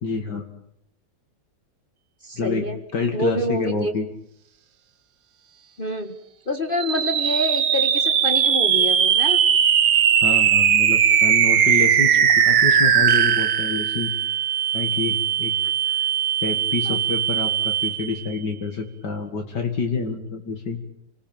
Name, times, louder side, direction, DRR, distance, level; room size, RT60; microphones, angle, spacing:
voice 1, 0.0-0.4 2.4-2.7 2.9-4.1 10.2-14.1 14.7-16.1 16.4-20.8, left 4 dB, 65° left, 3 dB, 2.7 m, -28 dB
voice 2, 2.2-2.8 3.1-3.9 5.8-6.2 6.5-9.4 16.8-17.0, left 1 dB, 30° left, 6 dB, 1.7 m, -26 dB
sound 1, 6.7-18.3, right 8 dB, 75° right, 2.0 m, -19 dB
29.5 x 19.5 x 8.9 m, 0.76 s
omnidirectional pair, 2.0 m